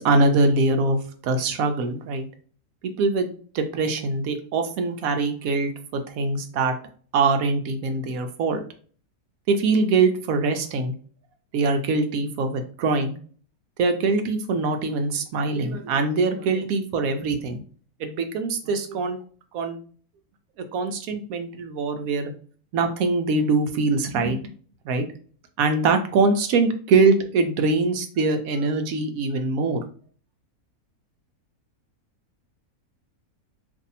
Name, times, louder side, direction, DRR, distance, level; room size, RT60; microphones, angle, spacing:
voice 1, 0.0-2.2 3.0-6.8 7.1-8.6 9.5-10.9 11.5-13.1 13.8-17.6 18.0-19.2 19.5-19.8 20.7-22.3 22.7-24.4 24.9-25.1 25.6-29.8, right 3 dB, 75° right, 6 dB, 1.0 m, -23 dB
2.6 x 2.6 x 4.0 m, 0.43 s
omnidirectional pair, 1.6 m